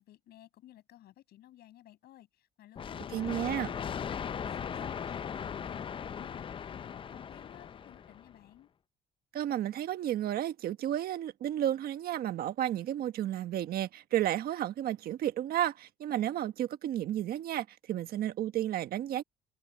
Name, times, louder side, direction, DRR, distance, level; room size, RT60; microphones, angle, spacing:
voice 1, 0.0-5.8 6.1-8.7, left 13 dB, 70° left, 7.4 m, -56 dB
sound 1, 2.8-8.4, left 7 dB, 30° left, 0.5 m, -38 dB
voice 2, 3.1-3.7 9.3-19.2, right 12 dB, 65° right, 1.4 m, -32 dB
cardioid pair, 110°, 17 cm